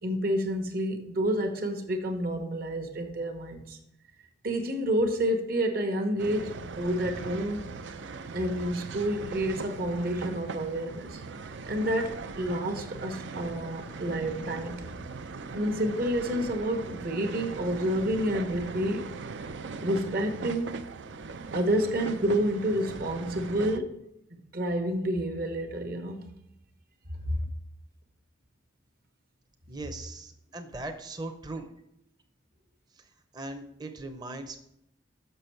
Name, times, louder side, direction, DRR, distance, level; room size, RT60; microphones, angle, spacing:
voice 1, 0.0-3.8 4.4-7.7 8.3-11.2 11.6-14.8 15.5-19.1 19.8-20.8 21.5-24.0 24.3-26.2, right 1 dB, 50° right, 5 dB, 1.1 m, -29 dB
sound 1, 6.2-23.8, right 4 dB, 70° right, 0.5 m, -40 dB
voice 2, 29.7-31.7 33.3-34.6, right 2 dB, 20° right, 5 dB, 0.7 m, -39 dB
6.8 x 6.2 x 4.4 m, 0.79 s
head